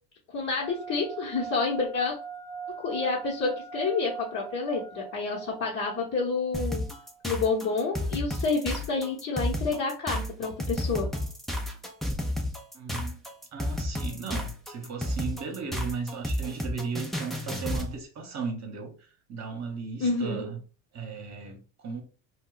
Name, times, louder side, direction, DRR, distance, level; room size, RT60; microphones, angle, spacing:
voice 1, 0.3-2.2 2.8-6.8 7.2-11.1 20.0-20.5, left 4 dB, 35° left, 1.0 m, -29 dB
sound 1, 0.6-7.3, right 6 dB, 55° left, 0.7 m, -41 dB
sound 2, 6.5-17.9, left 1 dB, ahead, 0.4 m, -31 dB
voice 2, 12.7-13.2 13.5-18.9 19.3-20.6 20.9-22.0, right 5 dB, 35° right, 1.0 m, -36 dB
2.3 x 2.2 x 3.8 m
hypercardioid pair, 80°, 47 cm